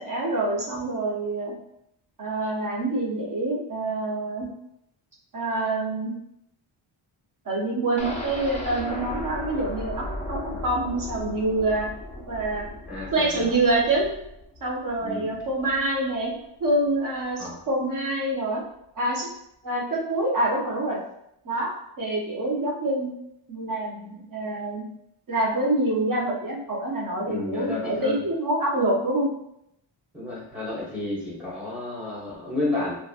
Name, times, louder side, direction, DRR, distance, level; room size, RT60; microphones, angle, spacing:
voice 1, 0.0-1.5 2.2-4.5 5.3-6.1 7.4-11.9 12.3-12.7 13.1-14.1 14.6-18.6 19.0-19.3 19.6-21.0 21.4-21.7 22.0-23.1 23.5-24.8 25.3-29.3, right 2 dB, 40° right, -3 dB, 0.7 m, -26 dB
sound 1, 8.0-15.8 16.2-16.3 16.7-16.8, left 1 dB, 15° left, 0.4 m, -36 dB
voice 2, 12.9-13.6 15.0-15.4 17.4-17.6 27.2-28.2 30.1-33.0, left 2 dB, ahead, -7 dB, 0.9 m, -31 dB
2.7 x 2.3 x 2.4 m, 0.79 s
wide cardioid pair, 130°, 49 cm